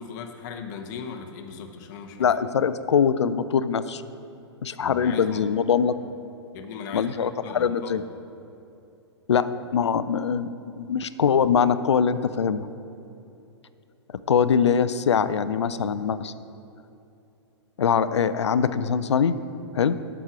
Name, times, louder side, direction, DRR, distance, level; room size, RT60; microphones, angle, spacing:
voice 1, 0.0-2.3 4.8-5.4 6.5-8.0, left 6 dB, 40° left, 5 dB, 0.9 m, -38 dB
voice 2, 2.2-4.0 4.6-5.9 6.9-8.0 9.3-10.5 10.8-12.7 14.3-16.3 17.8-19.4 19.7-20.0, left 7 dB, 75° left, 14 dB, 0.4 m, -22 dB
7.9 x 6.1 x 5.8 m, 2.7 s
figure-of-eight pair, 115°, 15 cm